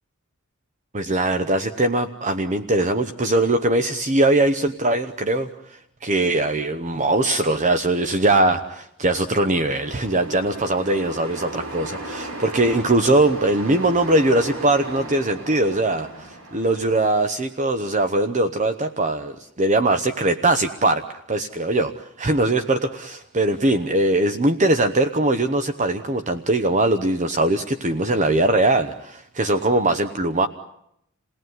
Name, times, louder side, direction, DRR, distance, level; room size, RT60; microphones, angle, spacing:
voice 1, 0.9-30.5, right 2 dB, 35° right, 9 dB, 0.9 m, -21 dB
sound 1, 9.2-17.1, right 2 dB, 65° right, 3.2 m, -36 dB
29.0 x 18.5 x 9.4 m, 0.78 s
head